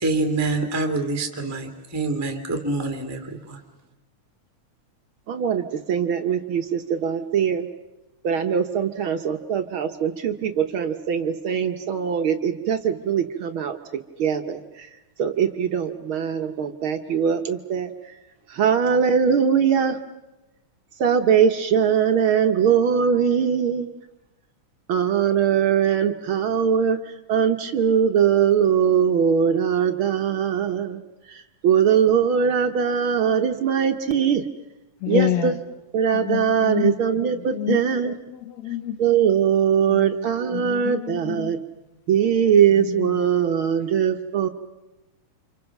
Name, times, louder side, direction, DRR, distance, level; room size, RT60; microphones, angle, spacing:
voice 1, 0.0-3.2 3.5-3.6, right 2 dB, 5° right, 1.8 m, -25 dB
voice 2, 5.3-7.6 8.2-13.7 14.2-14.6 15.2-17.9 18.6-20.0 21.0-23.9 24.9-27.0 27.3-31.0 31.6-34.4 35.1-35.5 35.9-38.1 39.0-41.6 42.1-44.5, right 7 dB, 65° right, 1.3 m, -21 dB
voice 3, 35.0-35.6 36.1-39.0 39.9-41.6 42.7-43.2 43.8-43.9, left 11 dB, 65° left, 2.3 m, -29 dB
29.5 x 26.5 x 5.9 m
omnidirectional pair, 3.5 m